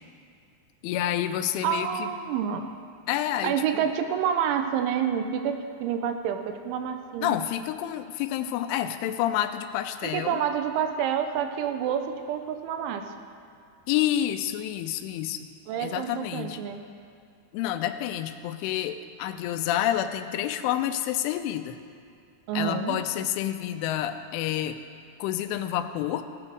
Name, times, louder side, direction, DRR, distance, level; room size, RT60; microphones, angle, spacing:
voice 1, 0.8-2.1 3.1-3.9 7.2-10.4 13.9-15.5 15.8-16.6 17.5-21.8 22.5-24.8 25.2-26.2, left 11 dB, 90° left, 9 dB, 3.1 m, -29 dB
voice 2, 1.6-2.7 3.4-7.4 10.1-13.1 15.7-16.8 22.5-23.0, right 8 dB, 80° right, 7 dB, 3.1 m, -28 dB
16.5 x 12.0 x 4.7 m, 2.4 s
omnidirectional pair, 5.5 m